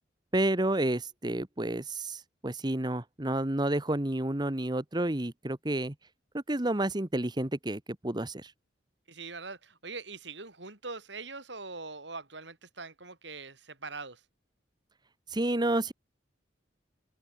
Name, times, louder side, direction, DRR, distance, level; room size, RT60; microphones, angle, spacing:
voice 1, 0.3-5.9 6.3-8.5 15.3-15.9, right 1 dB, 25° right, 1.2 m, -30 dB
voice 2, 9.1-14.2, right 3 dB, 75° right, 5.2 m, -42 dB
head